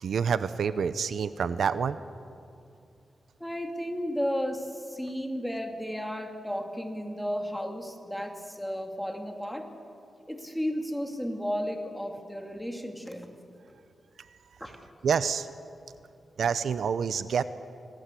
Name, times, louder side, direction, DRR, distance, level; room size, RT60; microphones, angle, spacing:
voice 1, 0.0-2.0 15.0-15.5 16.4-17.4, right 6 dB, 75° right, 13 dB, 0.7 m, -27 dB
voice 2, 3.4-9.7 10.3-13.3 14.6-15.0, equal, 5° left, 3 dB, 2.4 m, -33 dB
26.5 x 18.5 x 8.4 m, 2.6 s
wide cardioid pair, 140°, 0 cm